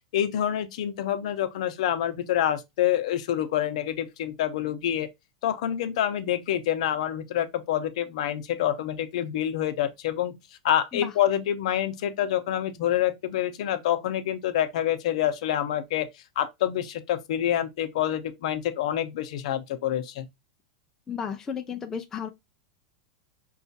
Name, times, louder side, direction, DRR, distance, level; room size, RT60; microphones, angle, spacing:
voice 1, 0.1-5.1 5.4-10.3 10.6-16.1 16.4-20.3, left 11 dB, 65° left, 0.7 m, -27 dB
voice 2, 21.1-22.3, left 7 dB, 10° left, 0.3 m, -33 dB
5.5 x 2.4 x 2.7 m
supercardioid pair, 165°, 4 cm